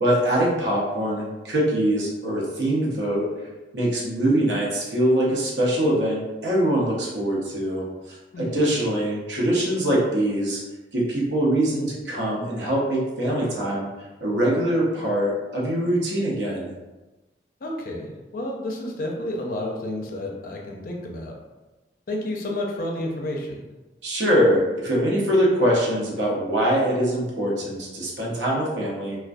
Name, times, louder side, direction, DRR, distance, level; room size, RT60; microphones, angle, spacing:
voice 1, 0.0-3.3 3.7-10.6 10.9-13.9 14.2-16.7 24.0-29.2, right 1 dB, 80° right, -4 dB, 0.7 m, -23 dB
voice 2, 17.6-21.4 22.1-23.6, left 1 dB, 50° left, 0 dB, 0.4 m, -30 dB
2.2 x 2.2 x 2.5 m, 1.1 s
head